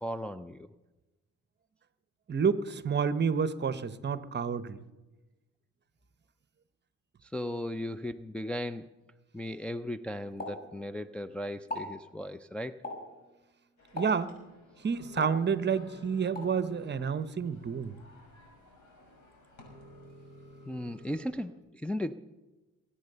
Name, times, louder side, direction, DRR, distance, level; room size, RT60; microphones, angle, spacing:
voice 1, 0.0-0.7 7.2-8.9 9.3-12.8 20.7-22.1, left 1 dB, 5° left, 0.4 m, -36 dB
voice 2, 2.3-4.8 13.9-14.3 14.8-18.0, right 6 dB, 35° right, 0.9 m, -29 dB
Explosion, 10.4-11.3 11.6-12.0 12.8-13.2 14.0-14.3 15.2-15.9 16.4-16.6, left 1 dB, 30° left, 6.3 m, -39 dB
sound 1, 13.8-21.3, left 1 dB, 70° left, 6.5 m, -54 dB
22.0 x 8.6 x 6.7 m
cardioid pair, 90°, 30 cm